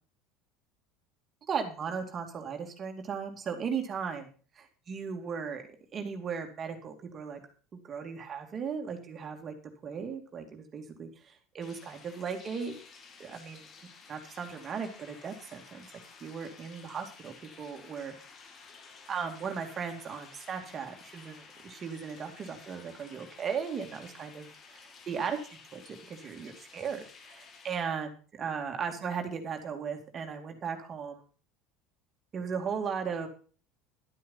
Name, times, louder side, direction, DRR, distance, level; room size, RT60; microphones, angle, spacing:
voice 1, 1.5-4.3 4.6-5.6 5.9-7.4 7.7-9.5 9.8-12.7 13.2-13.7 14.1-15.9 16.2-18.1 19.1-25.4 25.7-25.8 26.1-31.2 32.3-33.3, right 6 dB, 30° right, 4 dB, 2.5 m, -37 dB
sound 1, 11.6-27.8, left 5 dB, 40° left, 2.3 m, -53 dB
12.0 x 8.7 x 5.6 m, 0.39 s
supercardioid pair, 125°, 0 cm